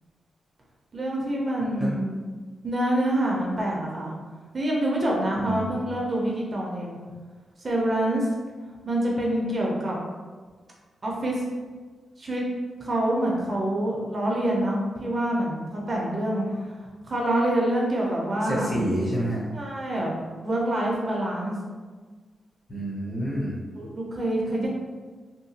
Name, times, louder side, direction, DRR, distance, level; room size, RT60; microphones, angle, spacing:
voice 1, 0.9-2.2 2.6-4.1 4.5-7.0 7.6-8.3 8.8-10.0 11.0-11.4 12.2-12.4 12.8-16.8 17.0-18.7 19.5-20.1 20.4-21.6 23.8-24.7, right 1 dB, 35° right, -3 dB, 0.5 m, -26 dB
voice 2, 5.4-5.8 18.4-19.4 22.7-23.6, equal, 25° left, -5 dB, 0.7 m, -28 dB
2.8 x 2.2 x 2.7 m, 1.4 s
wide cardioid pair, 145°, 0 cm